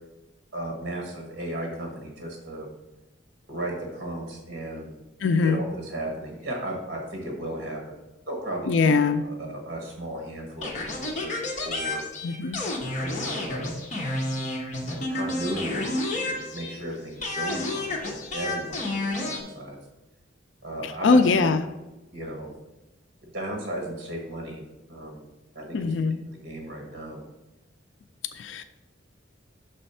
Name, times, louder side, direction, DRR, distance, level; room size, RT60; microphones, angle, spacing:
voice 1, 0.5-2.7 3.5-5.0 5.4-8.0 8.3-8.9 9.5-11.4 11.6-12.0 13.0-13.7 14.8-15.9 16.3-19.8 20.6-21.5 22.1-22.5 23.2-25.3 25.5-26.1 26.4-27.2, right 1 dB, 55° right, 0 dB, 1.2 m, -35 dB
voice 2, 5.2-5.6 8.7-9.2 12.2-12.6 20.8-21.7 25.7-26.2 28.3-28.6, left 4 dB, 75° left, 9 dB, 0.4 m, -22 dB
sound 1, 10.6-16.9 17.2-19.4, left 2 dB, 40° left, 1.0 m, -30 dB
6.2 x 3.3 x 5.4 m, 1.0 s
head